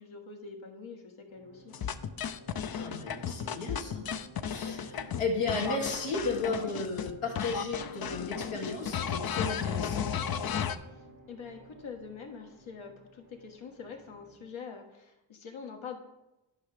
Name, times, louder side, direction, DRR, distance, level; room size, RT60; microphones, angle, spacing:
voice 1, 0.0-1.7 10.9-16.0, left 5 dB, 70° left, 3 dB, 1.4 m, -45 dB
sound 1, 1.3-14.6, equal, 85° right, 1.9 m, -53 dB
sound 2, 1.7-7.1 7.4-10.8, left 8 dB, 50° left, 0.6 m, -34 dB
voice 2, 2.7-4.1 4.5-10.1, left 3 dB, 85° left, -1 dB, 1.9 m, -34 dB
10.5 x 5.7 x 3.4 m, 0.98 s
cardioid pair, 60°, 49 cm